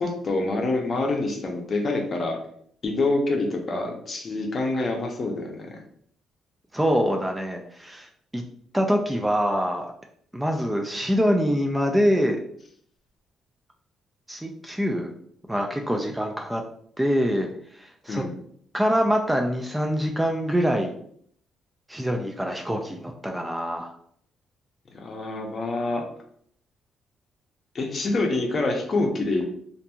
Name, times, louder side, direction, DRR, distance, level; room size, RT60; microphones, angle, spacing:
voice 1, 0.0-2.4 2.8-5.8 18.1-18.3 24.9-26.0 27.7-29.4, left 2 dB, 40° left, 2 dB, 0.6 m, -26 dB
voice 2, 6.7-8.4 8.7-9.9 10.3-12.4 14.3-15.1 15.5-16.6 17.0-18.2 18.7-20.9 21.9-23.9, equal, 10° right, 2 dB, 0.3 m, -25 dB
2.7 x 2.5 x 2.3 m, 0.64 s
cardioid pair, 90°, 0 cm